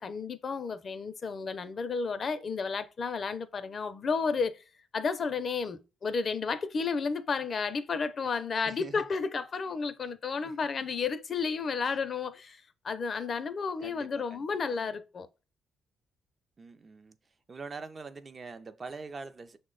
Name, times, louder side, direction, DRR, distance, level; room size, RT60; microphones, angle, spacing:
voice 1, 0.0-4.6 4.9-15.3, left 5 dB, 45° left, 0.5 m, -32 dB
voice 2, 8.6-9.1 10.4-10.6 13.8-14.9 16.6-17.2 17.5-19.6, right 4 dB, 35° right, 0.4 m, -44 dB
6.1 x 2.1 x 3.7 m
cardioid pair, 90°, 0 cm